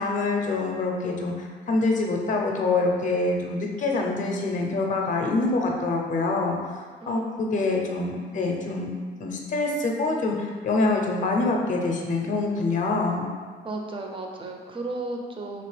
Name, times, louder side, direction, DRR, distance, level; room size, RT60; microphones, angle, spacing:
voice 1, 0.0-6.6 7.1-8.9 9.2-13.3, left 3 dB, 40° left, 0 dB, 0.5 m, -25 dB
voice 2, 7.0-7.8 13.6-15.6, right 2 dB, 25° right, 1 dB, 0.5 m, -34 dB
2.9 x 2.8 x 3.2 m, 1.5 s
cardioid pair, 90°, 20 cm